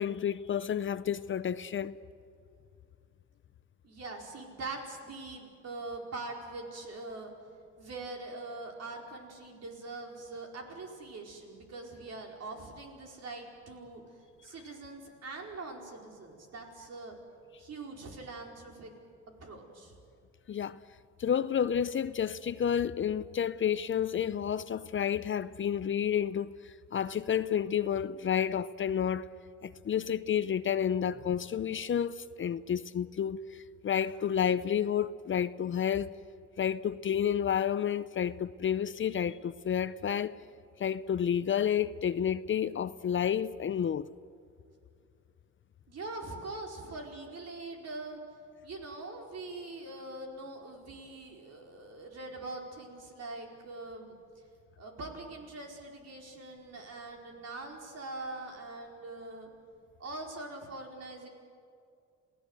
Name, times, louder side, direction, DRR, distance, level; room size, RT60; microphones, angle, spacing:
voice 1, 0.0-2.0 20.5-20.8 21.2-29.3 29.6-36.1 36.6-40.3 40.8-44.1, left 8 dB, 40° left, 0.6 m, -30 dB
voice 2, 3.8-7.3 7.8-14.0 14.4-17.2 17.6-18.9 19.4-20.0 45.9-48.2 48.6-54.1 54.8-59.5 60.0-61.3, right 2 dB, 55° right, 4.7 m, -43 dB
28.0 x 17.5 x 8.0 m
cardioid pair, 90°, 31 cm